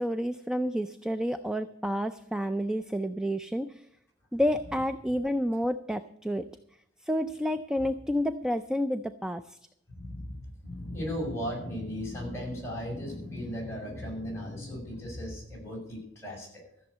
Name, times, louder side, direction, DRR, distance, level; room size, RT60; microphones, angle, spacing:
voice 1, 0.0-3.8 4.3-6.4 7.0-9.6, equal, 5° right, 10 dB, 0.4 m, -30 dB
voice 2, 9.9-16.5, equal, 15° left, -3 dB, 6.1 m, -36 dB
14.0 x 7.1 x 8.1 m, 0.73 s
head